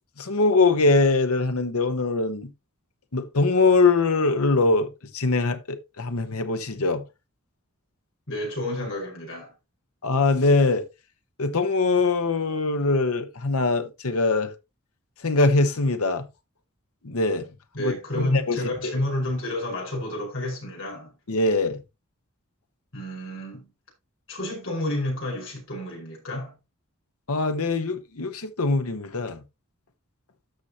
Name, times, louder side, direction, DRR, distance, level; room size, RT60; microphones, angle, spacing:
voice 1, 0.2-2.5 3.1-7.0 10.0-10.9 11.4-14.5 15.2-16.3 17.0-17.4 17.8-19.0 21.3-21.8 27.3-29.4, left 3 dB, 90° left, 1.1 m, -22 dB
voice 2, 8.3-9.5 17.7-21.1 22.9-23.7 24.3-26.5, left 1 dB, 65° left, 5.1 m, -30 dB
13.0 x 5.8 x 2.9 m
head